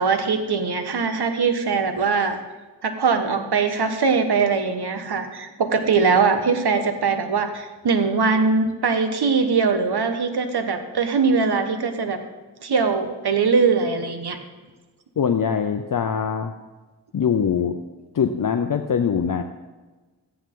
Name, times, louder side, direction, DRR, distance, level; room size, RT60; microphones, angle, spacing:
voice 1, 0.0-2.4 2.8-12.2 12.6-14.4, right 5 dB, 65° right, 7 dB, 1.4 m, -21 dB
voice 2, 15.2-16.5 17.1-17.7 18.1-19.4, left 7 dB, 50° left, 7 dB, 0.8 m, -22 dB
14.0 x 10.0 x 3.9 m, 1.3 s
cardioid pair, 55°, 42 cm